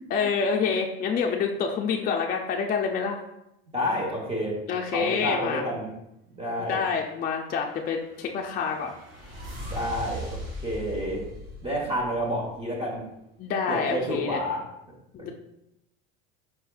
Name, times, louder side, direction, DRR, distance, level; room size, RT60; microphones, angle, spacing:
voice 1, 0.1-3.2 4.7-5.6 6.6-8.9 13.4-14.4 15.1-15.3, left 6 dB, 30° left, 1 dB, 0.4 m, -27 dB
voice 2, 3.7-4.6 4.9-5.9 6.4-6.8 9.7-11.2 11.6-13.0 13.7-14.6, equal, 20° right, -2 dB, 1.1 m, -29 dB
sound 1, 7.7-12.6, equal, 45° right, 1.6 m, -39 dB
4.7 x 4.0 x 2.3 m, 0.85 s
supercardioid pair, 115°, 29 cm